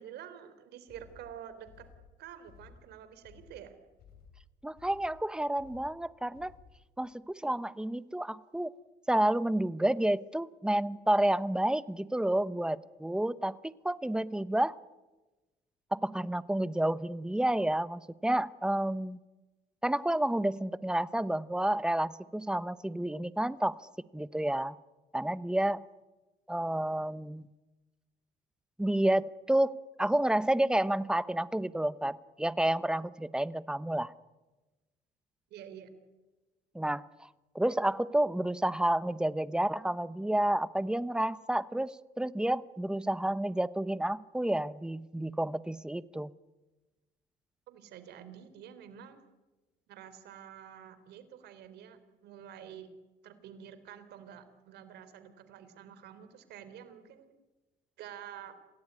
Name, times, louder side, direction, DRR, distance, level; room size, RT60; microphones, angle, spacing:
voice 1, 0.0-1.9 2.2-3.7 35.5-35.9 47.7-49.2 49.9-52.9 53.2-57.3 58.0-58.6, right 9 dB, 75° right, 11 dB, 3.4 m, -48 dB
sound 1, 0.9-6.9, left 6 dB, 70° left, 7.1 m, -57 dB
voice 2, 4.6-6.5 7.0-8.7 9.1-14.7 15.9-19.2 19.8-23.8 24.1-24.8 25.1-25.8 26.5-27.5 28.8-34.1 36.7-37.1 37.5-46.3, right 1 dB, 5° right, 16 dB, 0.8 m, -30 dB
27.0 x 17.5 x 9.8 m, 1.1 s
cardioid pair, 110°, 17 cm